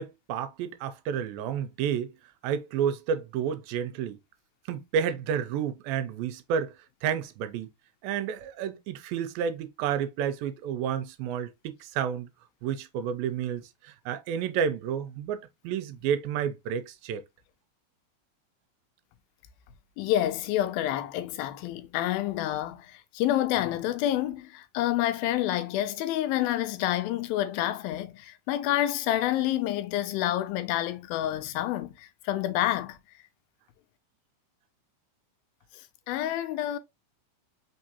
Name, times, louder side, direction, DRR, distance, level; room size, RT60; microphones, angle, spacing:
voice 1, 0.0-2.2 2.4-4.2 4.7-6.7 7.0-7.7 8.0-12.3 12.6-17.2, right 8 dB, 85° right, 2.4 m, -30 dB
voice 2, 20.0-33.0 36.1-36.8, left 13 dB, 90° left, 2.5 m, -28 dB
5.2 x 3.6 x 2.7 m
omnidirectional pair, 4.1 m